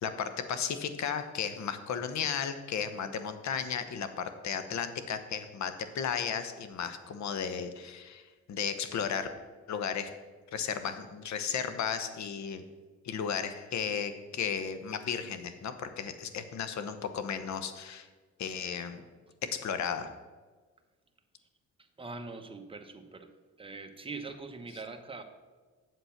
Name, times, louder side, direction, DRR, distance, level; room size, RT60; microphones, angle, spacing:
voice 1, 0.0-9.3 9.7-10.2 10.5-12.6 13.0-18.1 18.4-19.0 19.5-20.2, left 7 dB, 65° left, 10 dB, 1.0 m, -34 dB
voice 2, 22.0-23.3 23.6-25.2, right 3 dB, 20° right, 5 dB, 1.1 m, -42 dB
8.2 x 7.3 x 5.8 m, 1.4 s
cardioid pair, 90°, 30 cm